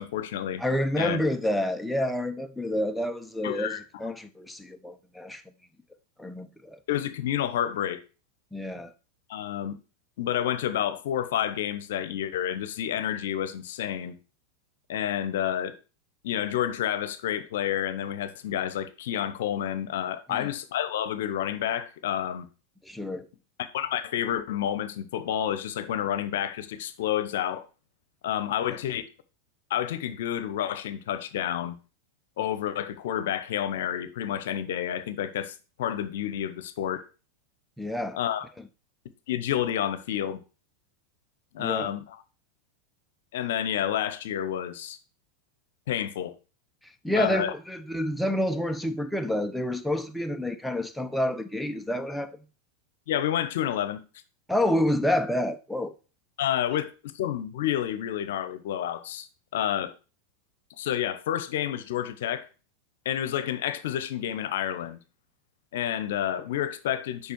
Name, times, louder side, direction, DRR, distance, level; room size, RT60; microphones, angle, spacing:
voice 1, 0.0-0.6 1.0-1.2 3.4-4.0 6.9-8.0 9.3-9.8 10.2-14.2 14.9-15.8 16.2-22.5 23.6-27.7 28.2-29.0 29.7-31.8 32.4-37.0 38.1-38.4 39.3-40.4 41.5-42.0 43.3-45.0 45.9-46.3 47.1-47.5 53.1-54.0 56.4-59.3 59.5-59.9 60.8-62.5 63.0-65.0 65.7-67.3, left 10 dB, 65° left, 0.9 m, -29 dB
voice 2, 0.6-5.4 6.2-6.8 8.5-8.9 20.3-20.5 22.8-23.3 37.8-38.2 38.6-38.7 41.6-41.9 46.8-52.4 54.5-55.9, left 1 dB, 5° left, 0.8 m, -28 dB
6.9 x 5.3 x 4.5 m
figure-of-eight pair, 90°, 0 cm